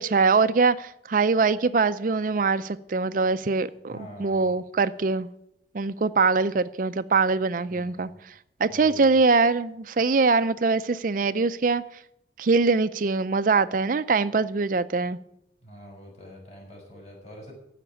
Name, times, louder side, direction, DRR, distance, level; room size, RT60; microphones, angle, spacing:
voice 1, 0.0-5.3 5.7-8.1 8.6-11.8 12.4-15.2, right 4 dB, 50° right, 0.4 m, -23 dB
voice 2, 3.9-4.6 7.7-8.2 8.7-9.2 15.6-17.5, equal, 35° left, 6.1 m, -45 dB
15.5 x 5.9 x 9.4 m
head